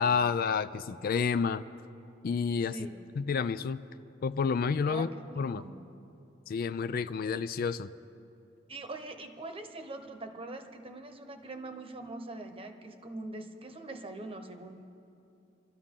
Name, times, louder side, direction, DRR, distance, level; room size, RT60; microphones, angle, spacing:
voice 1, 0.0-1.6 2.2-2.8 3.2-3.8 4.2-5.1 5.4-5.6 6.5-7.9, left 5 dB, 50° left, 13 dB, 0.3 m, -29 dB
voice 2, 4.9-5.8 8.7-14.9, right 2 dB, 30° right, 6 dB, 1.0 m, -43 dB
26.0 x 13.0 x 3.7 m, 2.7 s
head